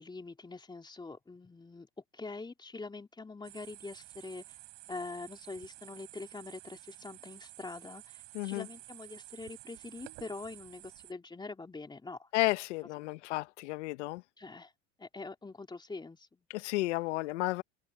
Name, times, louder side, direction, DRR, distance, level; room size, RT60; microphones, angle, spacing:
voice 1, 0.0-1.9 2.1-4.6 4.9-12.3 13.1-13.2 14.4-14.7 15.0-16.4, left 3 dB, 10° left, 3.0 m, -44 dB
sound 1, 3.4-11.1, right 28 dB, 65° right, 6.0 m, -52 dB
voice 2, 8.3-8.7 12.3-14.2 16.5-17.6, left 21 dB, 80° left, 1.0 m, -32 dB
supercardioid pair, 105°, 35 cm